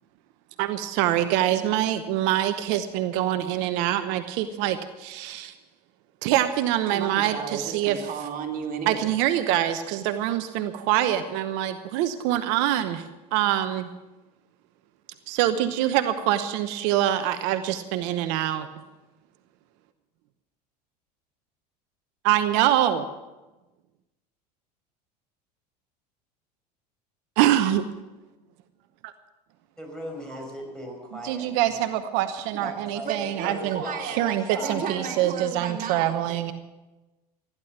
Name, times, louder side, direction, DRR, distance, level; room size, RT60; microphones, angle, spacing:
voice 1, 0.6-5.5 6.2-7.9 8.9-13.9 15.3-18.7 22.2-23.1 27.4-27.8 29.0-29.1 31.2-33.8 34.2-34.4 34.7-36.5, right 12 dB, 65° right, 10 dB, 1.0 m, -25 dB
voice 2, 6.9-9.1 10.7-10.8 32.5-32.6 33.0-36.5, right 6 dB, 40° right, 3 dB, 2.7 m, -34 dB
voice 3, 29.8-32.0 32.6-33.1 33.4-35.2, equal, 5° left, 0 dB, 5.9 m, -38 dB
16.0 x 10.5 x 7.3 m, 1.1 s
hypercardioid pair, 80°, 21 cm